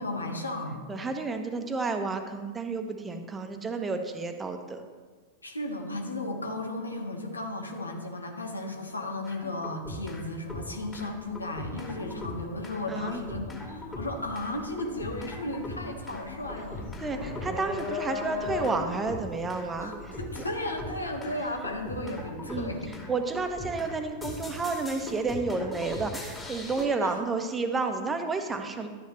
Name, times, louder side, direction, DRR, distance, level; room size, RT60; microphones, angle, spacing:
voice 1, 0.0-0.8 5.4-17.0 19.8-23.0 27.0-27.2, left 1 dB, 80° left, 3 dB, 1.5 m, -35 dB
voice 2, 0.9-4.8 12.9-13.2 17.0-19.9 22.5-22.7 23.1-28.9, right 3 dB, 15° right, 6 dB, 1.1 m, -31 dB
sound 1, 9.2-10.2 10.5-26.9, left 2 dB, 15° left, 2.3 m, -41 dB
sound 2, 14.0-14.3 14.6-21.7, left 4 dB, 60° left, 2.8 m, -37 dB
12.5 x 9.5 x 3.3 m, 1.4 s
figure-of-eight pair, 90°, 0 cm